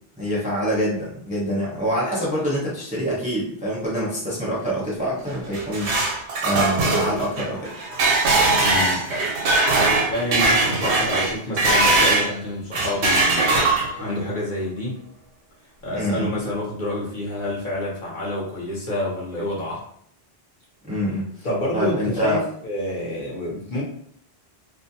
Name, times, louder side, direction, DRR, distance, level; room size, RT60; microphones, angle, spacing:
voice 1, 0.2-6.0 6.4-7.7 15.9-16.3 20.9-21.3 21.7-22.4, equal, 10° right, -6 dB, 0.6 m, -25 dB
sound 1, 5.3-12.3 12.7-14.1, right 2 dB, 85° right, 0.9 m, -20 dB
voice 2, 8.6-9.1 10.1-13.7 14.0-15.0 15.8-19.8 21.4-23.8, left 1 dB, 50° left, -5 dB, 0.8 m, -28 dB
2.5 x 2.1 x 2.7 m, 0.64 s
omnidirectional pair, 1.1 m